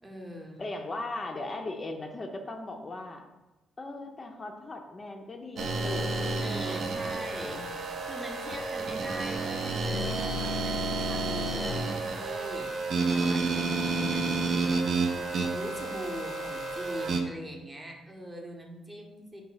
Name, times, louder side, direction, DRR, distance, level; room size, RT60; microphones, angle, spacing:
voice 1, 0.0-0.6 6.4-14.2 14.6-14.9 15.4-19.4, equal, 20° right, 1 dB, 0.7 m, -42 dB
voice 2, 0.6-3.3 3.8-6.8 13.9-14.6, left 2 dB, 30° left, 3 dB, 0.4 m, -38 dB
sound 1, 5.6-17.2, right 3 dB, 55° right, 0.5 m, -30 dB
3.9 x 2.2 x 3.9 m, 1.1 s
cardioid pair, 90°, 0 cm